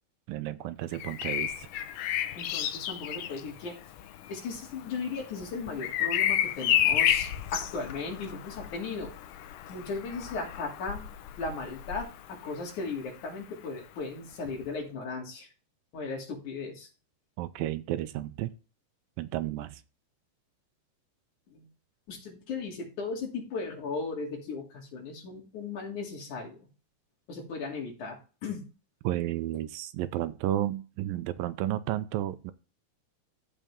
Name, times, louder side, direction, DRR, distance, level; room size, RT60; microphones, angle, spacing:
voice 1, 0.3-1.7 17.4-18.5 19.2-19.8 29.0-32.5, right 13 dB, 80° right, 13 dB, 2.3 m, -32 dB
Bird vocalization bird call bird song, 0.9-12.7 14.5-14.7, left 11 dB, 75° left, 2.2 m, -31 dB
voice 2, 2.4-3.8 4.3-9.1 9.7-11.0 11.4-15.5 15.9-16.9 21.5-21.7 22.1-26.6 27.3-28.6, left 4 dB, 55° left, -1 dB, 4.1 m, -37 dB
14.0 x 5.1 x 3.7 m, 0.33 s
omnidirectional pair, 4.1 m